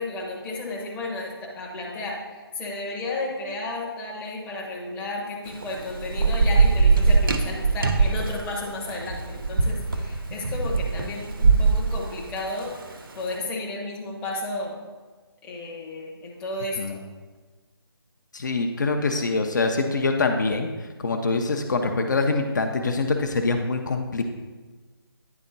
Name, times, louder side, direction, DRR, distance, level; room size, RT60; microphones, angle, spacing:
voice 1, 0.0-14.8 15.4-17.0, left 2 dB, 10° left, -3 dB, 0.7 m, -33 dB
Thunder / Rain, 5.5-13.1, right 4 dB, 60° right, 0.8 m, -22 dB
voice 2, 18.3-20.7 21.0-24.2, left 3 dB, 50° left, 5 dB, 0.6 m, -24 dB
9.8 x 3.6 x 3.9 m, 1.3 s
figure-of-eight pair, 150°, 13 cm